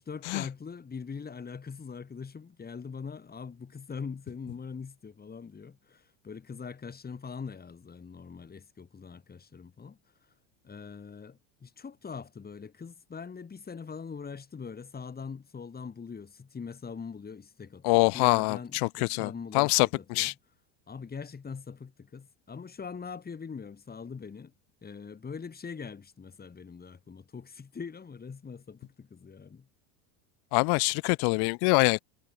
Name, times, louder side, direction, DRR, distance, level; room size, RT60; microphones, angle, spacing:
voice 1, 0.0-10.3 10.6-20.3 20.9-24.5 24.8-29.7, left 5 dB, 20° left, 4.3 m, -42 dB
voice 2, 17.8-20.3 30.5-32.0, left 36 dB, 50° left, 0.6 m, -25 dB
supercardioid pair, 120°, 48 cm